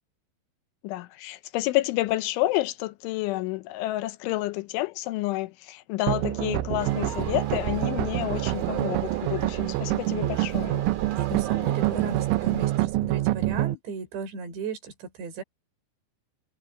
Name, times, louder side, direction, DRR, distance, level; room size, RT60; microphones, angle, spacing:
voice 1, 0.8-10.9, left 17 dB, 85° left, 3.3 m, -29 dB
sound 1, 6.1-13.8, right 16 dB, 90° right, 3.4 m, -26 dB
sound 2, 6.8-12.8, right 8 dB, 50° right, 3.8 m, -39 dB
voice 2, 11.2-15.4, right 4 dB, 65° right, 7.3 m, -36 dB
omnidirectional pair, 5.4 m